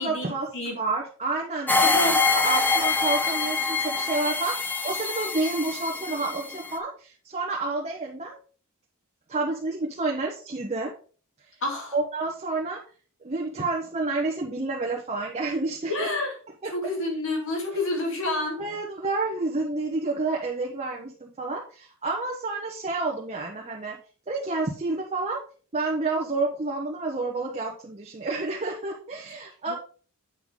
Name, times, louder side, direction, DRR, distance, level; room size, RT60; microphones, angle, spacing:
voice 1, 0.0-2.0 2.3-8.4 9.3-10.9 11.9-12.8 13.2-16.1 16.6-16.7 18.6-24.0 24.3-25.4 25.7-29.7, right 3 dB, 30° right, -2 dB, 1.0 m, -29 dB
sound 1, 1.7-6.8, left 4 dB, 10° left, 0.7 m, -25 dB
voice 2, 1.8-2.3 11.6-11.9 15.9-16.3 16.6-18.6 29.7-29.8, left 2 dB, 65° left, 1 dB, 2.1 m, -28 dB
7.9 x 5.7 x 3.7 m, 0.41 s
head